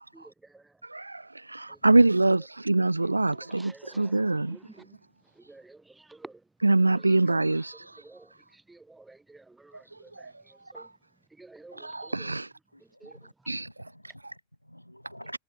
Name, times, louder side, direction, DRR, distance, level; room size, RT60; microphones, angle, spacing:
voice 1, 0.1-0.7 1.7-1.9 3.0-5.0 5.3-6.4 6.9-10.9 11.3-12.4 12.8-13.3, right 2 dB, 10° right, 1.6 m, -52 dB
voice 2, 0.9-1.2 1.5-4.6 6.6-7.7 11.8-12.5 13.5-13.7, right 2 dB, 85° right, 0.3 m, -24 dB
voice 3, 12.7-15.4, equal, 90° left, 2.7 m, -49 dB
figure-of-eight pair, 90°, 0 cm